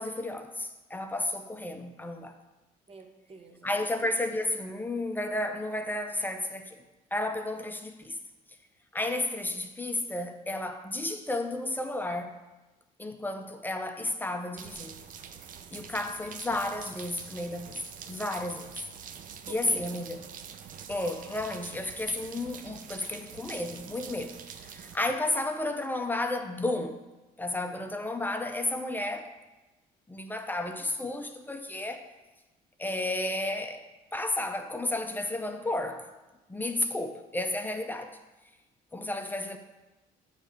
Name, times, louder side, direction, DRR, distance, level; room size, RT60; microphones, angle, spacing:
voice 1, 0.0-2.3 3.6-6.8 7.1-8.2 8.9-12.4 13.0-15.0 15.7-17.8 18.1-18.7 19.5-20.2 20.9-24.4 24.6-27.0 27.4-29.3 30.1-32.0 32.8-33.8 34.1-36.1 36.5-38.2 38.9-39.6, left 2 dB, 10° left, 0.5 m, -32 dB
voice 2, 2.9-3.8 19.3-20.1, right 3 dB, 35° right, 1.0 m, -48 dB
sound 1, 14.6-25.0, right 7 dB, 50° right, 0.5 m, -45 dB
8.3 x 3.2 x 5.0 m
cardioid pair, 110°, 17 cm